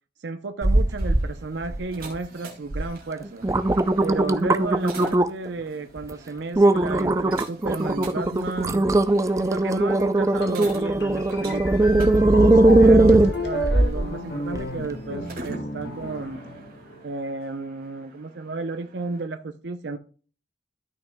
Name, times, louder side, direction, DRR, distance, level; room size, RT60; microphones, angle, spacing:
voice 1, 0.2-3.5 4.0-8.9 9.4-16.4 17.0-20.0, right 3 dB, 80° right, 7 dB, 0.6 m, -33 dB
sound 1, 0.6-1.3 1.6-2.2 2.7-2.8 3.2-5.5 6.0-6.1 6.6-14.1 14.5-14.6, right 2 dB, 15° right, 0.4 m, -19 dB
sound 2, 0.7-19.3, right 2 dB, 50° right, 2.2 m, -46 dB
sound 3, 10.4-17.1, equal, 75° left, 1.4 m, -33 dB
13.0 x 6.0 x 2.2 m, 0.39 s
head